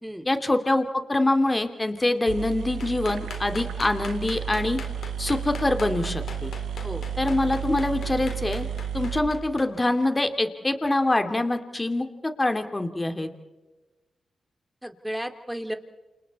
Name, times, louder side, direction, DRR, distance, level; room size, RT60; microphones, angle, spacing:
voice 1, 0.2-4.8 5.2-6.5 7.2-8.7 8.9-13.3, left 2 dB, 25° left, 6 dB, 2.8 m, -25 dB
sound 1, 2.0-2.1 2.3-10.1, right 8 dB, 85° right, 0.7 m, -33 dB
sound 2, 2.8-9.6, left 5 dB, 75° left, 3.7 m, -40 dB
voice 2, 14.8-15.8, equal, 5° right, 6 dB, 2.8 m, -33 dB
28.5 x 28.0 x 4.3 m, 1.1 s
supercardioid pair, 50°, 0 cm